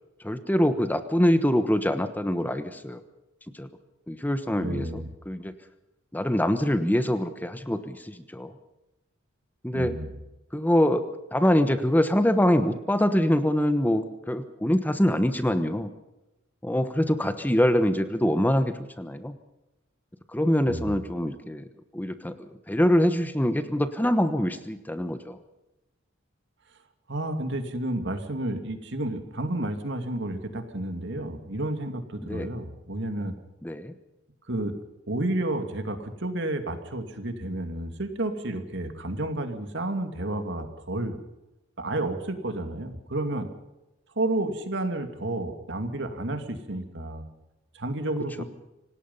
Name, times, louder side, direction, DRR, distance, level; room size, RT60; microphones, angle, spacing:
voice 1, 0.2-3.0 3.5-3.7 4.1-5.6 6.1-8.5 9.6-9.9 10.5-11.0 11.3-15.9 16.6-19.4 20.3-21.7 21.9-25.4 32.3-32.5 33.6-33.9 48.4-48.5, equal, 10° left, 10 dB, 1.1 m, -24 dB
voice 2, 4.6-5.1 9.7-10.2 20.7-21.0 27.1-33.3 34.5-34.7 35.1-41.2 41.8-43.5 44.2-47.3 47.7-48.4, right 1 dB, 65° right, 7 dB, 2.6 m, -31 dB
26.5 x 18.5 x 5.6 m, 0.95 s
head